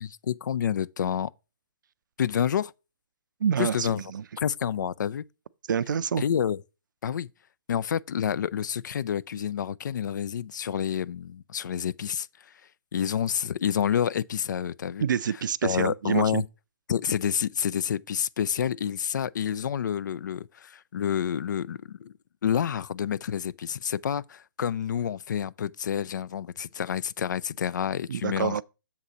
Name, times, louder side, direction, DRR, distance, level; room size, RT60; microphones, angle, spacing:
voice 1, 0.0-1.3 2.2-2.7 3.6-4.0 4.4-5.2 6.2-6.6 7.0-7.3 7.7-12.3 12.9-15.1 15.6-16.4 16.9-22.1 22.4-28.6, left 8 dB, 60° left, 0.4 m, -28 dB
voice 2, 3.4-4.2 5.7-6.2 15.0-16.4 28.1-28.6, right 7 dB, 65° right, 0.4 m, -27 dB
7.2 x 4.0 x 6.1 m
hypercardioid pair, 140°, 11 cm